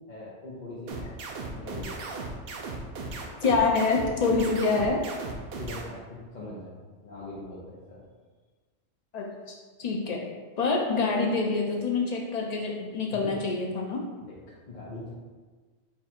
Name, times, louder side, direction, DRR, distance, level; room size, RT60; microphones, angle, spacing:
voice 1, 0.1-1.1 1.5-2.1 5.6-6.7 7.0-8.0 13.1-13.3 14.3-15.1, left 2 dB, 45° left, -8 dB, 0.7 m, -41 dB
sound 1, 0.9-5.8, right 3 dB, 60° right, 0.7 m, -36 dB
voice 2, 3.4-5.0 9.1-10.2 10.6-14.0, left 4 dB, 85° left, -1 dB, 0.3 m, -26 dB
4.3 x 2.4 x 4.3 m, 1.4 s
omnidirectional pair, 1.3 m